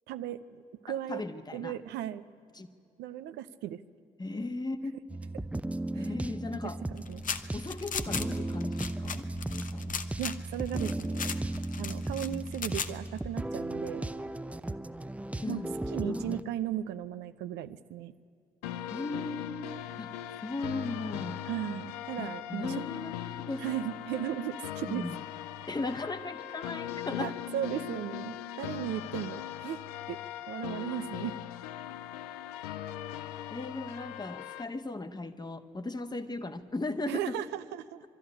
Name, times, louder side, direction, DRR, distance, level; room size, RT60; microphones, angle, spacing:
voice 1, 0.1-0.4 0.8-1.2 1.5-2.2 3.0-3.8 5.9-6.1 6.9-7.2 10.2-11.3 11.8-14.1 15.5-15.6 15.9-18.1 21.5-22.8 23.6-25.1 27.2-30.2 30.5-31.4 37.1-38.0, right 11 dB, 60° right, 11 dB, 0.6 m, -36 dB
voice 2, 0.9-1.8 2.5-2.7 4.2-4.9 5.9-6.8 7.5-10.0 12.3-12.4 15.4-15.7 16.0-16.4 18.9-19.7 20.0-20.1 20.4-21.4 22.2-23.1 23.5-23.6 24.9-25.2 25.7-27.3 33.5-37.4, left 2 dB, 20° left, 10 dB, 1.4 m, -37 dB
sound 1, 5.1-16.4, right 2 dB, 5° right, 0.7 m, -36 dB
sound 2, 7.0-13.2, left 6 dB, 40° left, 1.0 m, -37 dB
sound 3, 18.6-34.6, left 11 dB, 75° left, 0.5 m, -40 dB
22.0 x 13.5 x 10.0 m, 2.3 s
figure-of-eight pair, 45°, 20 cm